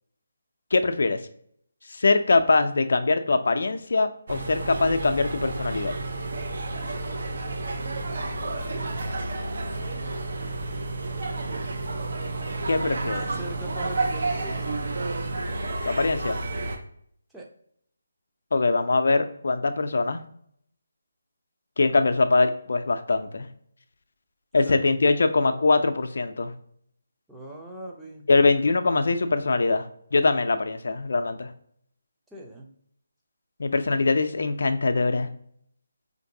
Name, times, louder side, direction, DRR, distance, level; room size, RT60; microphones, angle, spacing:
voice 1, 0.7-1.2 1.9-5.9 12.7-13.3 15.9-16.4 18.5-20.2 21.8-23.5 24.5-26.5 28.3-31.5 33.6-35.3, left 3 dB, 60° left, 8 dB, 0.4 m, -22 dB
sound 1, 4.3-16.8, right 2 dB, 60° right, 0.6 m, -31 dB
voice 2, 8.0-8.9 13.4-14.8 17.3-17.5 24.6-25.0 27.3-28.3 32.3-32.7, right 1 dB, 5° right, -3 dB, 0.5 m, -40 dB
4.4 x 2.6 x 2.7 m, 0.66 s
figure-of-eight pair, 150°, 0 cm